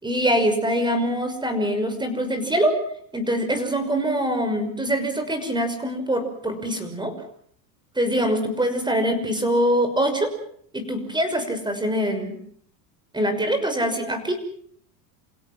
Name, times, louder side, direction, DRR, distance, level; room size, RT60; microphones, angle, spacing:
voice 1, 0.0-2.8 3.1-7.1 8.0-10.3 10.7-12.3 13.1-14.4, equal, 10° right, 9 dB, 6.1 m, -24 dB
28.5 x 17.0 x 7.5 m, 0.62 s
hypercardioid pair, 100°, 47 cm